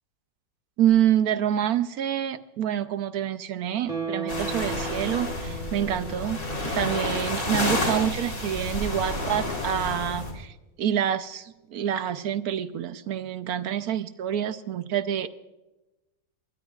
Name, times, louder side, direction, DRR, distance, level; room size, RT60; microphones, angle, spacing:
voice 1, 0.8-6.4 6.7-15.3, right 10 dB, 65° right, 12 dB, 1.1 m, -27 dB
Guitar, 3.9-7.1 7.5-7.6, right 4 dB, 30° right, 2.3 m, -36 dB
sound 1, 4.3-10.3, left 2 dB, 50° left, 4.1 m, -30 dB
23.0 x 19.0 x 2.4 m, 1.0 s
omnidirectional pair, 1.9 m